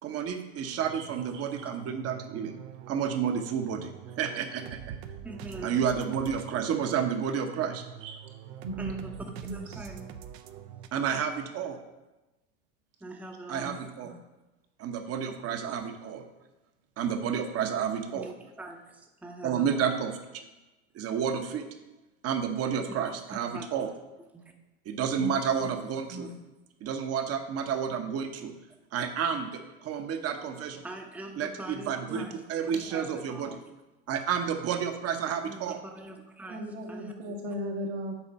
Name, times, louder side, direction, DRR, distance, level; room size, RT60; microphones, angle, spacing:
voice 1, 0.0-2.5 2.9-3.9 4.2-5.0 5.6-7.8 10.9-11.8 13.5-14.1 14.8-16.2 17.0-18.3 19.4-20.4 20.9-21.6 22.2-23.9 24.9-26.3 26.8-28.5 28.9-29.5 29.8-30.8 31.4-32.2 32.5-33.6 34.1-35.8, right 7 dB, 40° right, 6 dB, 1.0 m, -30 dB
sound 1, 0.7-10.9, right 9 dB, 60° right, 0.7 m, -44 dB
voice 2, 1.3-1.6 8.0-8.1 8.6-9.1 9.4-9.8 13.6-14.2 25.2-25.3 25.6-25.7 26.1-26.4 29.3-29.4 32.1-32.3 32.7-32.8 36.5-38.1, equal, 75° right, 0 dB, 1.7 m, -37 dB
voice 3, 5.2-5.8 8.8-10.1 13.0-13.8 18.1-19.9 22.8-23.7 24.3-24.4 30.8-33.7 35.4-37.1, right 2 dB, 5° right, 3 dB, 0.8 m, -43 dB
7.1 x 4.3 x 5.6 m, 1.1 s
hypercardioid pair, 85°, 36 cm